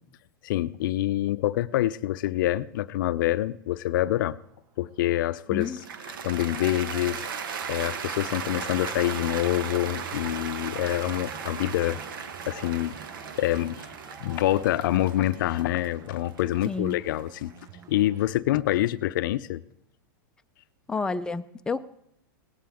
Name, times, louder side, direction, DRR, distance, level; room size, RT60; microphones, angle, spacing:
voice 1, 0.4-4.4 4.8-5.7 6.2-7.3 7.7-12.0 12.5-13.0 13.4-13.8 14.2-17.5 17.9-19.6, left 14 dB, 70° left, 0.5 m, -26 dB
sound 1, 4.4-18.3, right 8 dB, 30° right, 0.8 m, -50 dB
voice 2, 5.5-5.8 16.6-17.0 20.9-21.8, left 4 dB, 5° left, 0.5 m, -30 dB
Cheering / Applause, 5.6-17.8, right 7 dB, 80° right, 1.2 m, -37 dB
Shout / Cheering, 8.1-17.0, right 3 dB, 55° right, 3.6 m, -49 dB
18.0 x 12.5 x 3.5 m
hypercardioid pair, 120°, 11 cm